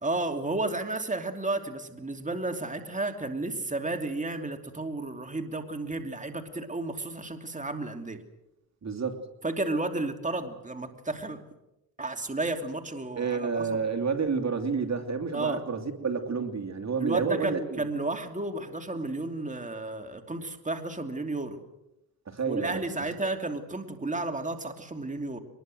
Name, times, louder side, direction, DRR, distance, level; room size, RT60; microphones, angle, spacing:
voice 1, 0.0-8.2 9.4-11.4 12.0-13.8 15.3-15.6 17.0-21.6 22.5-25.4, right 2 dB, 20° right, 5 dB, 2.9 m, -32 dB
voice 2, 8.8-9.2 13.2-17.8 22.3-22.8, right 5 dB, 50° right, 5 dB, 2.9 m, -29 dB
23.5 x 21.0 x 7.9 m, 0.89 s
cardioid pair, 75°, 36 cm